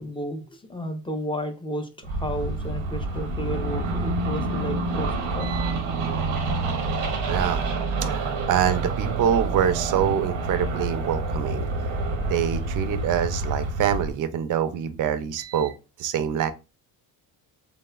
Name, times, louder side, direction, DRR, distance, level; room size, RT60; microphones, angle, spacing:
voice 1, 0.0-5.5, equal, 15° left, 0.4 m, -32 dB
sound 1, 2.0-14.1, right 3 dB, 85° right, 0.8 m, -27 dB
voice 2, 5.4-5.8 7.3-7.6 8.0-11.7 12.3-16.5, right 9 dB, 50° right, 0.4 m, -25 dB
3.1 x 2.0 x 2.2 m
cardioid pair, 75°, 43 cm